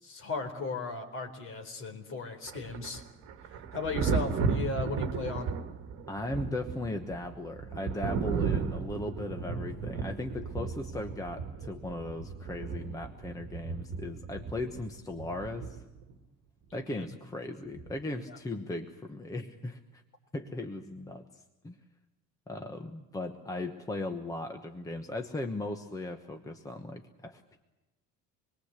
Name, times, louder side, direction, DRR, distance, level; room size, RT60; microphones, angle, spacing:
voice 1, 0.0-3.0 3.5-5.5 16.7-17.0 18.3-18.4, left 3 dB, 40° left, 5 dB, 4.3 m, -36 dB
Thunder, 2.5-16.1 17.8-18.0, right 5 dB, 50° right, 2.2 m, -35 dB
voice 2, 6.1-15.8 16.7-20.0 20.3-21.8 22.5-27.6, left 2 dB, 10° left, 6 dB, 1.1 m, -37 dB
26.5 x 22.5 x 8.2 m, 1.0 s
cardioid pair, 180°, 32 cm